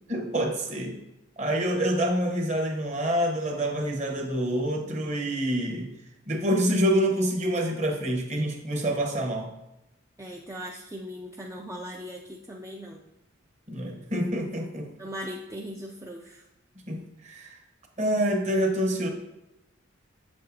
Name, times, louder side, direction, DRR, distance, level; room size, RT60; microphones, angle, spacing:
voice 1, 0.1-0.9 1.4-5.9 6.3-9.5 13.7-14.9 16.9-17.6 18.0-19.1, equal, 35° right, 3 dB, 1.0 m, -27 dB
voice 2, 10.2-13.0 15.0-16.4, equal, 15° right, -1 dB, 0.4 m, -39 dB
7.5 x 6.5 x 2.7 m, 0.92 s
head